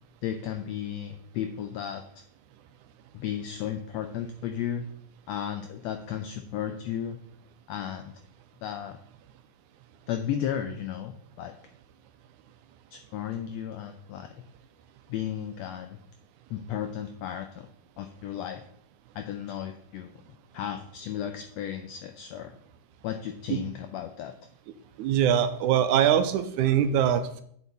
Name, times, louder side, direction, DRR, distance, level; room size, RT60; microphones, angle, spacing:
voice 1, 0.2-2.2 3.1-4.8 5.3-7.2 7.7-8.1 8.6-9.0 10.1-11.6 12.9-14.3 15.1-16.0 16.5-17.7 18.0-18.6 19.1-20.1 20.5-22.6 23.0-24.3, left 10 dB, 85° left, 7 dB, 1.5 m, -34 dB
voice 2, 25.0-27.4, right 9 dB, 80° right, 9 dB, 2.0 m, -23 dB
8.2 x 7.1 x 4.1 m, 0.65 s
omnidirectional pair, 3.6 m